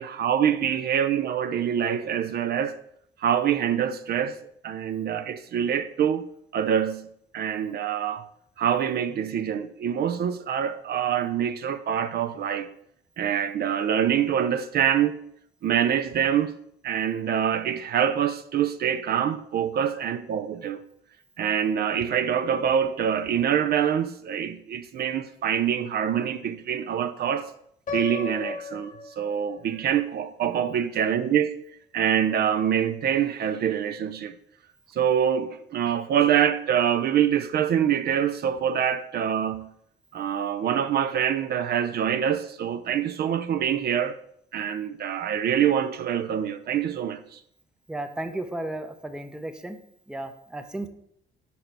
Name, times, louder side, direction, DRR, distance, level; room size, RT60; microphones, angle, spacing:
voice 1, 0.0-2.8 3.2-4.4 4.6-6.2 6.5-7.1 7.3-8.3 8.6-12.7 13.2-15.2 15.6-16.5 16.8-20.8 21.4-27.5 27.9-31.6 31.9-34.3 34.9-39.7 40.1-44.2 44.5-47.4, right 9 dB, 55° right, 0.4 m, -25 dB
Piano, 27.9-29.8, left 4 dB, 40° left, 0.9 m, -35 dB
voice 2, 47.9-49.8 50.1-50.9, right 1 dB, 5° right, 0.5 m, -34 dB
5.3 x 4.2 x 4.5 m
cardioid pair, 95°, 19 cm